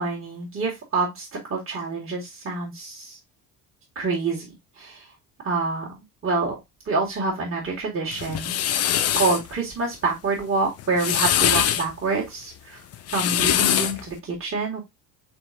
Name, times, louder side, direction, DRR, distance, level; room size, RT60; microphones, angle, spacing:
voice 1, 0.0-3.2 4.0-4.5 4.8-5.0 5.4-5.9 6.2-6.6 6.9-8.5 9.1-12.8 13.1-14.8, right 3 dB, 25° right, -4 dB, 2.2 m, -27 dB
sound 1, 8.1-9.4 10.8-11.9 12.9-14.0, left 10 dB, 30° left, 0.6 m, -22 dB
4.5 x 4.0 x 2.7 m, 0.18 s
figure-of-eight pair, 60°, 49 cm